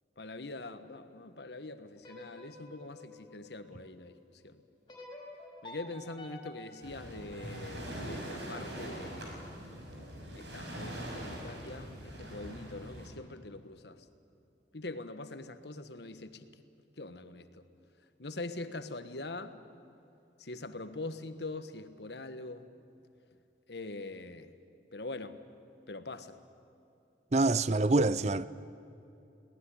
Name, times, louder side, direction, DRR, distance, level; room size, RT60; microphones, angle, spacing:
voice 1, 0.2-4.6 5.6-9.4 10.3-14.1 14.7-16.5 17.0-17.6 18.2-19.6 20.4-22.7 23.7-24.5 24.9-25.4 25.9-26.4, left 2 dB, 70° left, 1.4 m, -43 dB
sound 1, 2.0-4.2 4.9-8.0, left 1 dB, 25° left, 5.0 m, -51 dB
Waves surf, 6.8-13.1, equal, 75° right, 6.2 m, -42 dB
voice 2, 27.3-28.4, right 2 dB, 40° right, 0.6 m, -26 dB
22.5 x 18.5 x 10.0 m
head